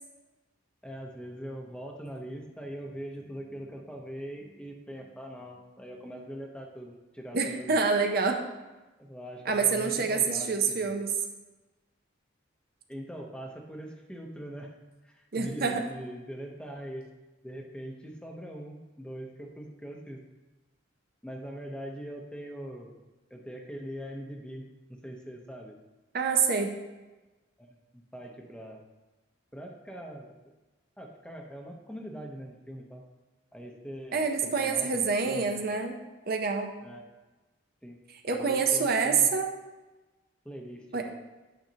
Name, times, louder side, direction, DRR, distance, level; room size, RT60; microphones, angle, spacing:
voice 1, 0.8-7.8 9.0-10.9 12.9-14.7 15.0-17.1 17.4-20.2 21.2-22.9 23.3-25.8 27.6-27.7 28.1-28.8 29.5-30.3 31.0-33.0 33.5-35.6 36.8-37.0 37.8-38.0 38.3-39.3 40.4-41.1, equal, 5° left, 1 dB, 0.8 m, -42 dB
voice 2, 7.3-8.4 9.5-11.1 15.3-15.8 26.1-26.7 34.1-36.0 36.3-36.7 38.2-39.5 40.9-41.1, right 5 dB, 50° right, 4 dB, 0.6 m, -26 dB
9.0 x 6.4 x 2.8 m, 1.1 s
head